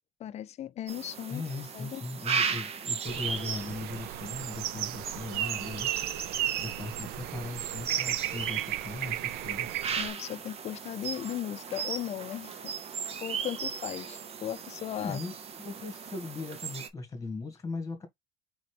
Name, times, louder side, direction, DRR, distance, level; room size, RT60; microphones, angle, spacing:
voice 1, 0.2-1.4 1.7-2.0 10.0-12.6 13.2-15.2, left 11 dB, 40° left, 0.6 m, -37 dB
sound 1, 0.9-16.9, right 6 dB, 35° right, 0.9 m, -37 dB
voice 2, 1.3-9.7 15.0-18.1, left 3 dB, 20° left, 2.1 m, -39 dB
sound 2, 3.1-10.1, right 14 dB, 65° right, 0.5 m, -35 dB
4.1 x 3.8 x 3.3 m
supercardioid pair, 105°, 17 cm